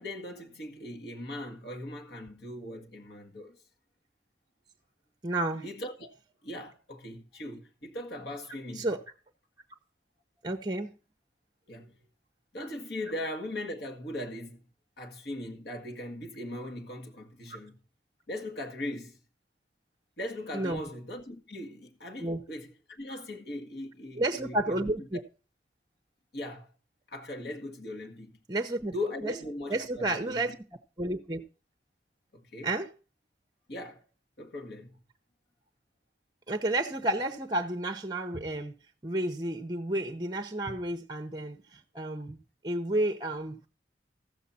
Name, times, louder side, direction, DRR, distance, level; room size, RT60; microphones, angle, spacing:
voice 1, 0.0-3.6 5.6-6.1 6.4-8.9 11.7-11.9 12.5-14.6 15.0-17.8 18.3-19.2 20.2-22.7 23.0-25.1 26.3-26.7 27.1-28.4 28.9-30.6 32.3-32.7 33.7-34.0 34.4-34.9, left 1 dB, 65° left, 1.8 m, -39 dB
voice 2, 5.2-5.7 8.7-9.0 10.4-10.9 20.5-20.8 22.2-22.4 24.2-25.2 28.5-28.9 29.2-29.3 29.7-30.5 31.0-31.4 32.6-32.9 36.5-38.7 39.0-43.7, right 1 dB, 25° right, 0.7 m, -31 dB
14.5 x 7.2 x 4.2 m
head